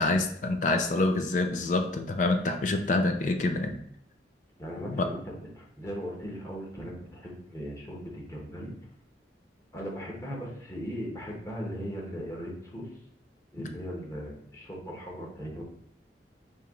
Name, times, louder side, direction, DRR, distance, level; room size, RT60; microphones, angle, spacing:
voice 1, 0.0-3.8 4.9-5.0 13.6-13.7, left 2 dB, 45° left, 6 dB, 0.4 m, -26 dB
voice 2, 4.6-8.7 9.7-13.0 13.5-15.6, equal, 15° left, -2 dB, 1.0 m, -38 dB
4.4 x 2.9 x 3.6 m, 0.69 s
head